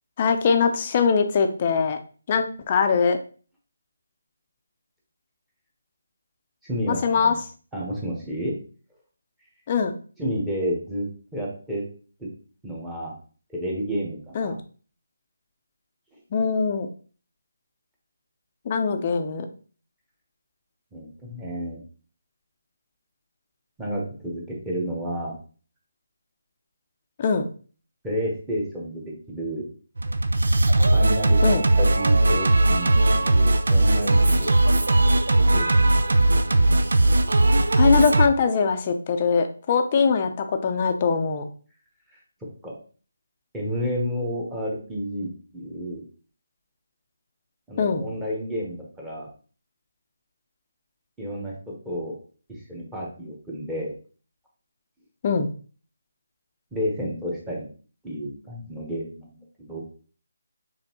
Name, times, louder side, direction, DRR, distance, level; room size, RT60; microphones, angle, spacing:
voice 1, 0.2-2.0 2.3-3.2 6.9-7.3 9.7-9.9 14.4-14.5 16.3-16.9 18.7-19.5 27.2-27.4 31.4-31.6 37.8-41.5 47.8-48.0 55.2-55.5, left 5 dB, 30° left, 7 dB, 0.5 m, -22 dB
voice 2, 6.6-7.4 7.7-8.5 10.2-11.1 11.3-11.8 12.2-12.3 12.6-13.1 13.5-14.6 20.9-21.8 23.8-25.3 28.0-29.7 30.9-34.7 35.5-36.0 42.6-42.7 43.5-46.0 47.7-49.3 51.2-52.1 52.5-53.9 56.7-57.7 58.0-59.8, equal, 5° right, -4 dB, 1.1 m, -31 dB
Singing, 30.0-38.3, right 2 dB, 75° right, 0.5 m, -19 dB
5.2 x 3.4 x 2.9 m, 0.40 s
figure-of-eight pair, 165°, 0 cm